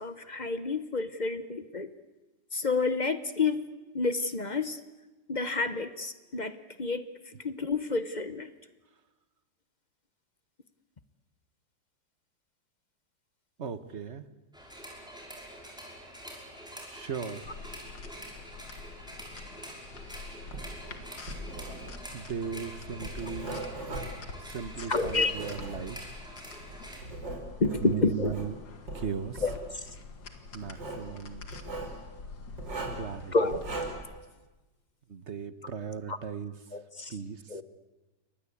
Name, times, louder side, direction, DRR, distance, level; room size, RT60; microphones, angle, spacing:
voice 1, 0.0-1.9 2.5-3.7 3.9-4.8 5.3-7.0 7.4-8.5 24.9-25.3 27.6-28.3 29.4-29.8 33.3-33.6 36.1-36.2 36.7-37.1 37.5-37.6, left 3 dB, 35° left, 11 dB, 0.8 m, -29 dB
voice 2, 13.6-14.3 16.8-17.5 22.1-23.7 24.4-26.0 27.8-28.6 28.9-29.5 30.5-31.5 33.0-33.6 35.1-36.6 37.1-37.6, right 7 dB, 45° right, 12 dB, 1.2 m, -37 dB
sound 1, 14.5-27.0, equal, ahead, 5.5 m, -46 dB
sound 2, 17.4-33.9, left 4 dB, 75° left, 2.7 m, -47 dB
Writing, 20.5-26.2 26.7-28.5 28.9-29.6 30.6-31.1 31.5-31.9 32.6-33.1 33.5-34.1, right 2 dB, 75° right, 5.6 m, -39 dB
29.0 x 24.0 x 8.5 m, 1.2 s
omnidirectional pair, 2.0 m